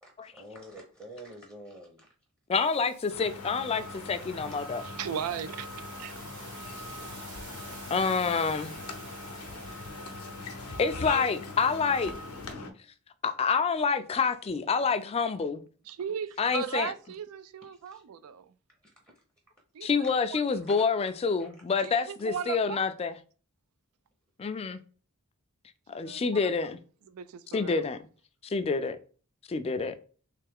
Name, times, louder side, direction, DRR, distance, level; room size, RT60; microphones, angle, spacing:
voice 1, 0.0-2.1 14.8-14.9 16.4-16.5 17.6-18.0 18.8-18.9 19.8-19.9 20.5-21.5, right 1 dB, 15° right, 0.7 m, -49 dB
voice 2, 2.5-4.8 6.7-6.8 7.2-7.3 7.9-8.7 10.8-12.1 13.2-15.6 16.4-16.9 19.8-23.1 24.4-24.8 25.9-26.8 27.5-28.0 28.4-29.0 29.5-29.9, left 5 dB, 25° left, 0.3 m, -28 dB
sound 1, 2.5-12.5, right 3 dB, 60° right, 1.5 m, -50 dB
sound 2, 3.1-12.7, left 3 dB, 90° left, 0.7 m, -41 dB
voice 3, 4.8-5.7 6.0-6.2 15.9-18.5 19.7-19.9 20.3-20.4 21.8-22.9 26.0-26.4 27.1-27.8, right 8 dB, 75° right, 0.4 m, -37 dB
3.3 x 3.1 x 3.4 m
head